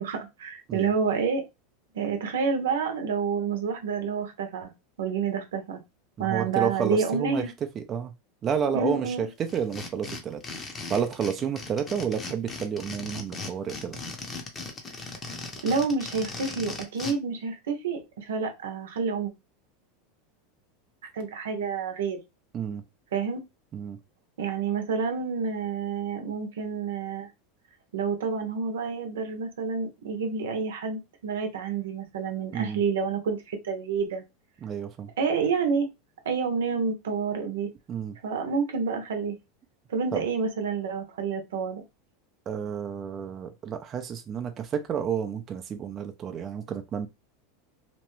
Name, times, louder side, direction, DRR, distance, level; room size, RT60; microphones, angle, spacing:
voice 1, 0.0-1.4 1.9-4.7 5.0-5.8 6.2-7.5 8.7-9.3 15.2-19.3 21.1-22.2 23.1-23.4 24.4-27.3 27.9-34.2 35.2-35.9 36.2-37.7 38.2-39.4 39.9-41.8, right 5 dB, 90° right, 0.7 m, -29 dB
voice 2, 6.2-7.4 7.8-8.1 8.4-10.4 10.9-14.0 22.5-22.8 23.7-24.0 32.5-32.8 34.6-35.1 37.9-38.2 40.1-40.2 42.5-47.1, right 7 dB, 30° right, 0.5 m, -30 dB
sound 1, 9.5-17.1, left 3 dB, 25° left, 0.7 m, -38 dB
2.9 x 2.2 x 3.1 m
supercardioid pair, 125°, 0 cm